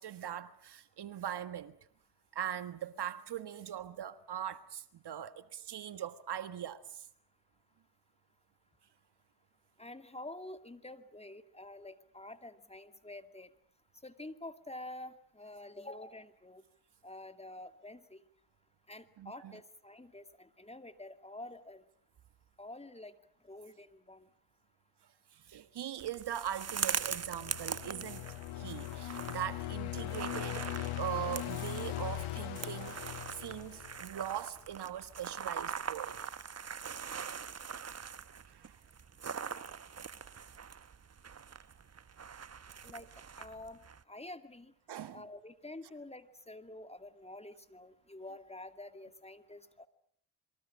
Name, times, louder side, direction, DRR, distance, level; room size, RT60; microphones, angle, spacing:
voice 1, 0.0-1.8 2.3-7.1 19.2-19.5 25.3-28.3 28.5-30.7 31.0-33.0 33.3-36.2 38.5-38.8 43.0-43.1 44.9-45.2, right 10 dB, 55° right, 1.5 m, -41 dB
voice 2, 9.8-13.5 14.0-16.6 17.0-18.2 18.9-21.8 22.6-23.1 23.4-24.3 42.8-43.1 43.4-43.8 44.1-44.7 45.1-49.9, left 2 dB, 10° left, 2.4 m, -48 dB
sound 1, 26.0-44.0, right 6 dB, 30° right, 1.2 m, -42 dB
sound 2, 27.0-34.3, left 16 dB, 75° left, 1.5 m, -40 dB
27.0 x 23.5 x 7.4 m
supercardioid pair, 60°, 49 cm